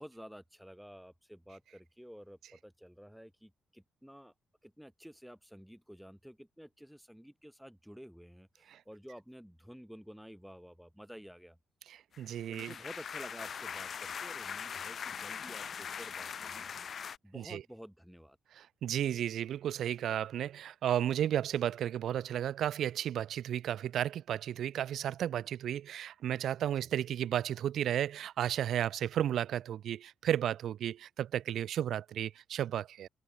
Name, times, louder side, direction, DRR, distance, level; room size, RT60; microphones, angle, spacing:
voice 1, 0.0-4.3 4.6-11.6 12.5-16.7 17.2-18.4 26.8-26.9, equal, ahead, 6.9 m, -51 dB
voice 2, 11.9-12.7 17.3-17.6 18.5-33.1, right 10 dB, 70° right, 1.4 m, -33 dB
sound 1, 12.1-17.2, left 7 dB, 50° left, 2.5 m, -41 dB
cardioid pair, 90°, 0 cm